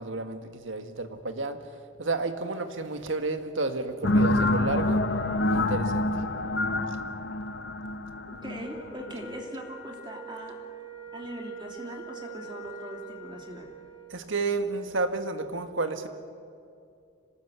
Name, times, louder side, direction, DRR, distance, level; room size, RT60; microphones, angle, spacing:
voice 1, 0.0-1.6 2.0-5.0 5.5-6.1 14.1-16.1, right 3 dB, 80° right, 7 dB, 1.8 m, -31 dB
sound 1, 4.0-9.4, left 2 dB, 60° left, 1.1 m, -27 dB
voice 2, 8.3-10.6 11.1-13.7, equal, 25° right, 1 dB, 2.9 m, -40 dB
Wind instrument woodwind instrument, 8.6-14.2, right 4 dB, 25° left, 6.3 m, -44 dB
26.5 x 19.0 x 8.2 m, 2.4 s
head